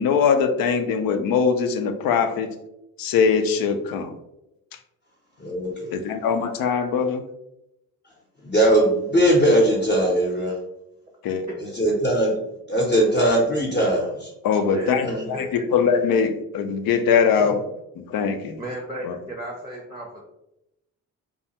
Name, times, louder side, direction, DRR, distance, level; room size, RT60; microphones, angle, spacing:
voice 1, 0.0-2.6 3.0-4.1 5.9-7.2 11.2-11.5 14.4-17.6 18.0-18.6 19.0-19.2, left 6 dB, 65° left, 8 dB, 0.5 m, -22 dB
voice 2, 5.4-6.0 8.4-10.6 11.6-12.3 12.7-14.3 15.0-15.3 17.3-17.5, right 1 dB, 25° left, -4 dB, 0.8 m, -20 dB
voice 3, 14.7-15.7 18.6-20.3, right 1 dB, 10° right, 0 dB, 0.6 m, -35 dB
2.3 x 2.2 x 2.8 m, 0.87 s
hypercardioid pair, 50°, 38 cm